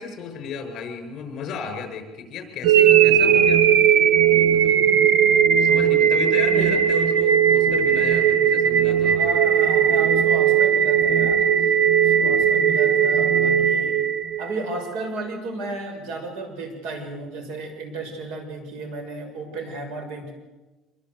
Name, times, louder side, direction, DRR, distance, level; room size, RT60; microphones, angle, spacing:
voice 1, 0.0-3.7 4.3-4.8 5.6-9.4, left 6 dB, 40° left, 7 dB, 6.4 m, -34 dB
sound 1, 2.6-14.7, right 8 dB, 60° right, 1.8 m, -18 dB
voice 2, 4.7-5.1 6.5-6.7 9.1-11.7 12.0-14.0 14.4-20.3, right 2 dB, 90° right, 5 dB, 6.6 m, -33 dB
26.5 x 23.0 x 8.2 m, 1.2 s
cardioid pair, 170°, 0 cm